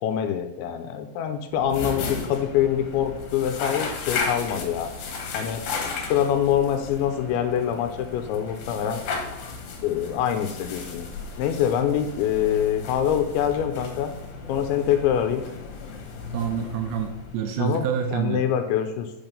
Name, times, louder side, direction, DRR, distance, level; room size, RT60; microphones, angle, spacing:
voice 1, 0.0-4.9 5.3-5.6 6.1-9.0 9.8-11.1 11.4-14.1 14.5-15.4 17.6-17.9 18.1-19.1, left 9 dB, 85° left, 7 dB, 3.0 m, -25 dB
sound 1, 1.5-17.7, left 4 dB, 65° left, 2.7 m, -35 dB
voice 2, 16.3-18.4, right 8 dB, 75° right, 5 dB, 2.7 m, -27 dB
8.8 x 5.8 x 5.3 m, 0.88 s
omnidirectional pair, 5.4 m